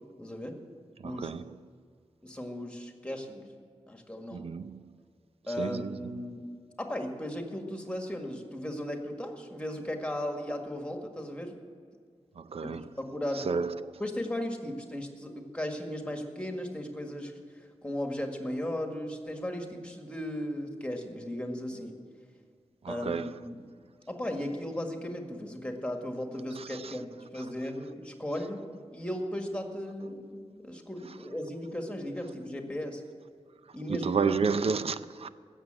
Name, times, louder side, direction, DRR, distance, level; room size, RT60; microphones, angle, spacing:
voice 1, 0.2-0.6 1.0-1.3 2.2-3.5 3.9-4.5 5.5-6.5 6.8-11.6 12.6-13.5 14.0-22.0 22.9-23.6 24.1-28.6 28.9-33.0 33.7-34.4, left 1 dB, 10° left, 1.8 m, -36 dB
voice 2, 1.0-1.5 4.3-4.8 5.6-6.1 12.4-12.8 13.4-13.9 22.8-23.4 26.6-26.9 33.9-35.3, right 5 dB, 65° right, 0.5 m, -31 dB
15.5 x 7.3 x 8.9 m
wide cardioid pair, 110°, 11 cm